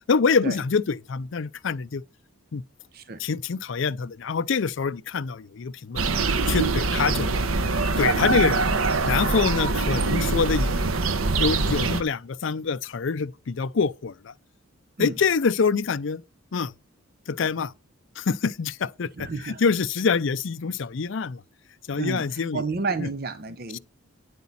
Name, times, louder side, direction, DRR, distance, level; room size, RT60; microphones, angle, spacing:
voice 1, 0.1-2.0 2.5-2.6 3.2-6.0 6.5-7.3 8.0-8.7 9.0-10.8 11.4-14.3 15.0-16.2 16.5-16.7 17.3-17.7 18.2-21.4 21.9-22.6 23.0-23.1 23.7-23.8, left 5 dB, 65° left, 0.5 m, -25 dB
voice 2, 2.9-3.2 15.0-15.1 19.2-19.6 22.0-23.8, right 4 dB, 45° right, 0.7 m, -31 dB
sound 1, 6.0-12.0, right 3 dB, 90° right, 1.0 m, -23 dB
9.5 x 8.0 x 4.2 m
head